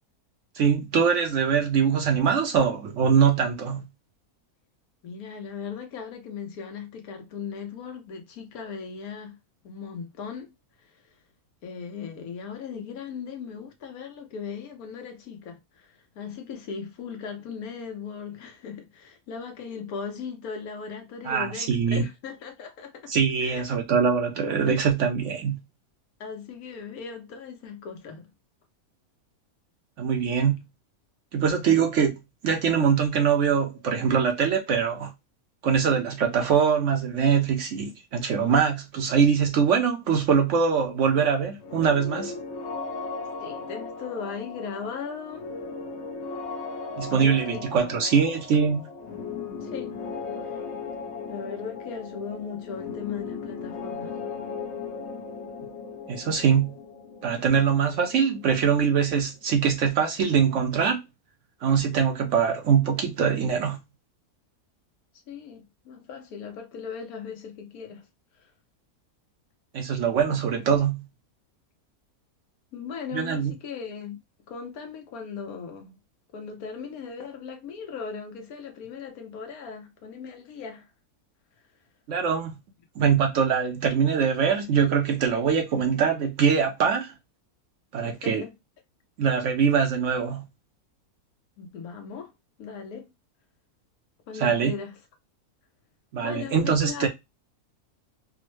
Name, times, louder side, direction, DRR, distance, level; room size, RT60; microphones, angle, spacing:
voice 1, 0.6-3.8 21.2-22.0 23.1-25.6 30.0-30.6 31.3-35.1 35.6-42.3 47.0-48.9 56.1-56.8 57.2-61.0 61.6-63.8 69.7-71.0 73.1-73.5 82.1-82.5 83.0-87.1 87.9-88.4 89.2-90.4 94.4-94.7 96.1-97.1, right 6 dB, 65° right, 0.8 m, -23 dB
voice 2, 5.0-9.4 9.6-10.5 10.8-11.0 11.6-23.8 24.7-24.8 26.2-28.3 43.4-45.4 47.1-48.0 49.6-49.9 50.4-50.6 51.3-54.1 65.3-68.1 68.4-68.5 72.7-74.2 74.5-76.0 76.3-80.9 88.0-88.5 91.6-92.3 92.6-93.0 94.3-95.0 96.2-97.1, left 6 dB, 75° left, 1.3 m, -38 dB
sound 1, 41.6-59.3, left 4 dB, 60° left, 0.8 m, -37 dB
3.5 x 2.1 x 3.0 m
omnidirectional pair, 1.6 m